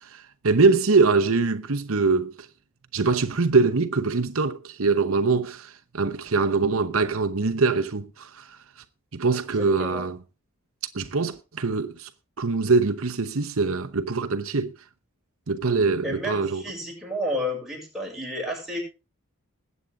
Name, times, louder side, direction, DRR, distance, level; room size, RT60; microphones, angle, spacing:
voice 1, 0.0-2.5 2.9-8.6 9.1-10.2 10.9-12.1 12.4-14.7 15.5-16.6, right 4 dB, 70° right, 0.9 m, -23 dB
voice 2, 16.0-18.8, left 1 dB, ahead, 6.7 m, -31 dB
21.0 x 8.4 x 3.7 m
head